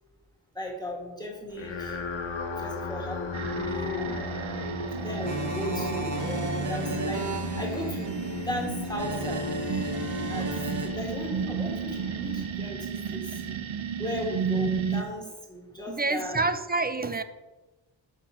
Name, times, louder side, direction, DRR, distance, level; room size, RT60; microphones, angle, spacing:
voice 1, 0.5-2.0 2.5-4.2 5.0-7.3 7.6-9.5 10.3-10.5 10.8-13.3 14.0-16.5, equal, 10° left, 1.7 m, -36 dB
sound 1, 1.5-13.0, left 4 dB, 75° left, 0.9 m, -36 dB
sound 2, 3.3-15.0, right 7 dB, 90° right, 0.6 m, -33 dB
sound 3, 5.2-10.9, right 2 dB, 40° right, 1.0 m, -35 dB
voice 2, 15.9-17.2, right 3 dB, 20° right, 0.4 m, -27 dB
6.2 x 5.7 x 4.3 m
wide cardioid pair, 65°, 47 cm